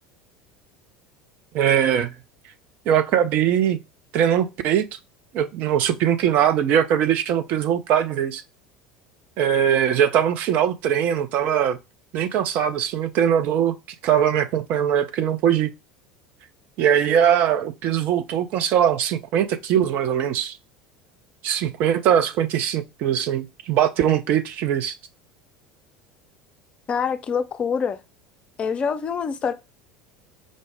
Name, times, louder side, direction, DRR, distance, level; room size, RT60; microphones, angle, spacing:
voice 1, 1.5-2.1 2.9-3.8 4.1-4.9 5.3-8.4 9.4-11.8 12.1-13.8 14.0-15.7 16.8-20.6 21.4-24.9, right 9 dB, 45° right, 0.4 m, -21 dB
voice 2, 26.9-28.0 28.6-29.5, left 6 dB, 30° left, 0.4 m, -25 dB
5.1 x 2.0 x 3.3 m
figure-of-eight pair, 70°, 4 cm